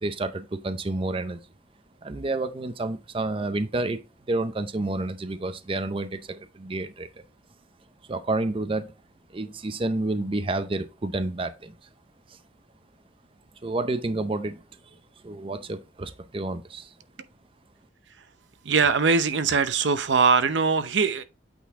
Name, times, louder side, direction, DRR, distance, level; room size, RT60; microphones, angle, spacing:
voice 1, 0.0-1.4 2.0-4.0 4.3-7.2 8.1-8.9 9.3-11.7 13.6-14.6 15.2-16.9, right 2 dB, 30° right, 0.5 m, -29 dB
voice 2, 18.6-21.2, right 5 dB, 90° right, 0.7 m, -21 dB
8.5 x 4.0 x 3.6 m
head